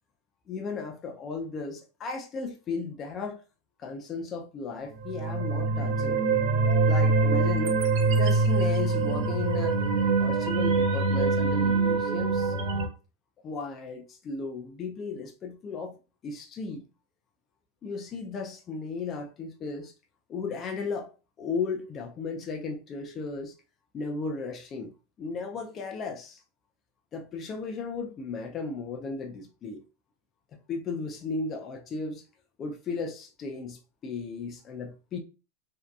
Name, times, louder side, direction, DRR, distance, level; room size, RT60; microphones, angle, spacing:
voice 1, 0.5-3.4 3.8-6.2 6.9-7.8 8.1-9.8 10.2-12.6 13.4-16.0 16.2-16.9 17.8-19.9 20.3-21.1 21.4-23.5 23.9-24.9 25.2-26.4 27.1-29.8 30.7-32.2 32.6-35.2, left 4 dB, 25° left, 0.3 m, -35 dB
sound 1, 5.0-12.9, right 3 dB, 60° right, 0.6 m, -24 dB
2.6 x 2.2 x 2.2 m
supercardioid pair, 155°, 0 cm